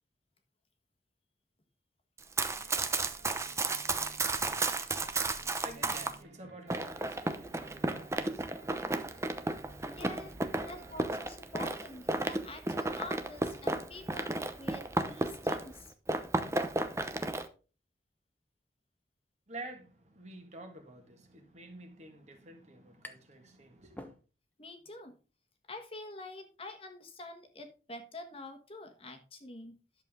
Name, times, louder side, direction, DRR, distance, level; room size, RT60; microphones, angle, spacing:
Run, 2.2-6.1 6.7-15.8 16.1-17.4, right 2 dB, 15° right, 0.8 m, -33 dB
sound 1, 2.5-11.2, right 3 dB, 90° right, 2.6 m, -57 dB
voice 1, 3.8-10.0 10.6-10.7 19.5-24.2, right 2 dB, 40° right, 2.0 m, -50 dB
voice 2, 9.8-10.3 10.6-15.9 24.6-25.2 25.7-30.0, left 2 dB, 30° left, 1.4 m, -47 dB
sound 2, 23.0-23.4 23.8-24.7, left 1 dB, 10° left, 1.0 m, -50 dB
11.0 x 7.1 x 3.8 m
head